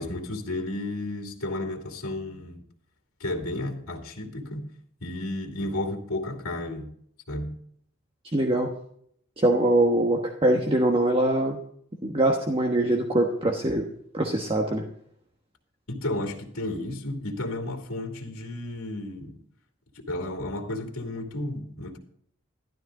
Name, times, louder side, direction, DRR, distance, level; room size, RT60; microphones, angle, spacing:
voice 1, 0.0-2.6 3.2-4.7 5.0-6.9 7.3-7.6 15.9-19.4 19.9-22.0, left 1 dB, 90° left, 2 dB, 2.7 m, -32 dB
voice 2, 8.3-8.7 9.4-11.6 12.0-13.9 14.1-14.8, right 1 dB, 25° right, 2 dB, 1.2 m, -23 dB
12.5 x 12.0 x 3.8 m, 0.66 s
head